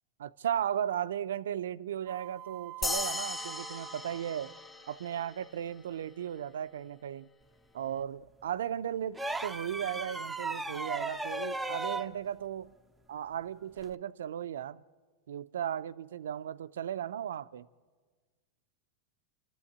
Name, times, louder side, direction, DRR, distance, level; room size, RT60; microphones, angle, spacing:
voice 1, 0.2-4.5 4.9-7.3 7.7-12.7 13.1-14.8 15.3-17.7, right 10 dB, 85° right, 0.5 m, -36 dB
sound 1, 2.1-4.7, right 17 dB, 40° right, 0.6 m, -47 dB
sound 2, 2.8-5.6, left 2 dB, 15° left, 1.2 m, -37 dB
sound 3, 9.1-12.1 13.8-13.9, right 2 dB, 5° right, 0.7 m, -36 dB
26.0 x 12.5 x 8.6 m
supercardioid pair, 130°, 0 cm